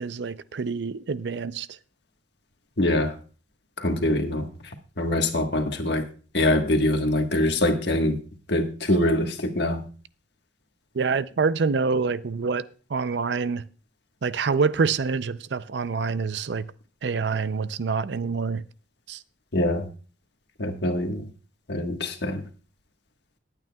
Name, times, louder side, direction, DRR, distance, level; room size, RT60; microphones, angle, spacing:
voice 1, 0.0-1.7 11.0-12.6 12.9-13.6 14.2-16.7 17.0-18.6 19.1-19.2, right 5 dB, 70° right, 0.5 m, -26 dB
voice 2, 2.8-3.1 3.8-4.5 5.0-6.1 6.3-8.2 8.5-9.8 19.5-19.9 20.6-21.3 21.7-22.4, left 1 dB, 65° left, 1.4 m, -24 dB
19.5 x 9.0 x 2.3 m
head